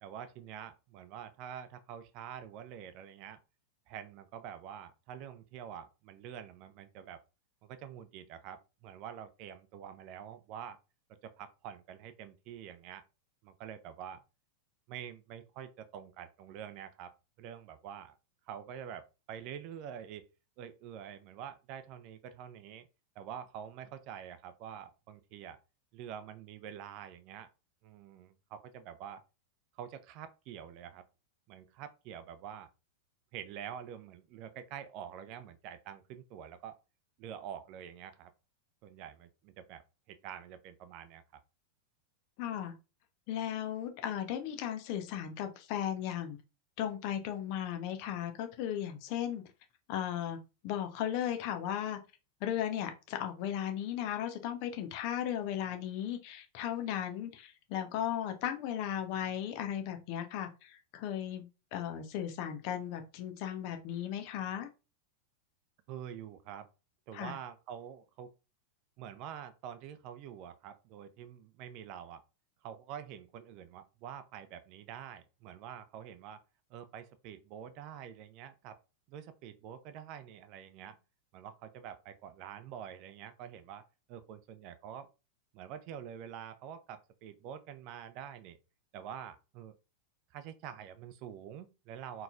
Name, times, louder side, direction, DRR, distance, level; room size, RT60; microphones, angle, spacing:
voice 1, 0.0-3.4 3.9-7.2 7.6-10.8 11.2-13.0 13.4-14.2 14.9-18.2 18.5-20.3 20.6-22.9 23.2-25.6 25.9-27.5 27.8-29.2 29.7-31.0 31.5-32.7 33.3-36.8 37.2-38.3 38.8-39.8 40.1-41.2 65.9-66.7 67.1-68.3 69.0-72.2 72.6-76.4 76.7-78.8 79.1-81.0 81.3-83.8 84.1-85.1 85.5-88.6 88.9-89.7 90.3-92.2, right 9 dB, 40° right, 0.6 m, -46 dB
voice 2, 42.4-42.7 43.3-46.4 46.8-49.4 49.9-50.4 50.6-52.0 52.4-64.7 67.1-67.3, left 10 dB, 45° left, 0.9 m, -36 dB
4.3 x 4.1 x 2.5 m
figure-of-eight pair, 90°, 0 cm